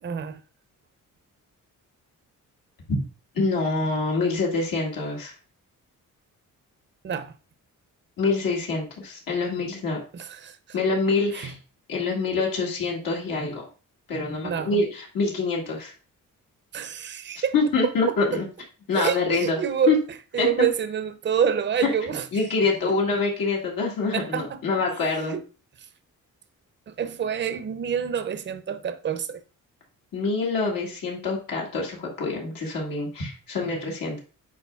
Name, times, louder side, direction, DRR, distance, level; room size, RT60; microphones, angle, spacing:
voice 1, 0.0-0.4 7.0-7.3 10.1-10.8 11.3-11.5 14.4-14.8 16.7-17.5 18.1-18.2 18.9-20.0 20.3-22.5 24.1-24.6 25.3-25.4 25.8-25.9 26.9-29.4, right 8 dB, 35° right, 0.5 m, -27 dB
voice 2, 3.3-5.4 8.2-10.0 10.7-11.6 11.9-13.7 14.1-15.9 17.4-18.4 18.9-19.6 19.9-20.0 20.4-20.5 22.3-25.4 30.1-34.2, left 3 dB, 85° left, 1.9 m, -25 dB
8.2 x 5.0 x 2.3 m
cardioid pair, 125°, 33 cm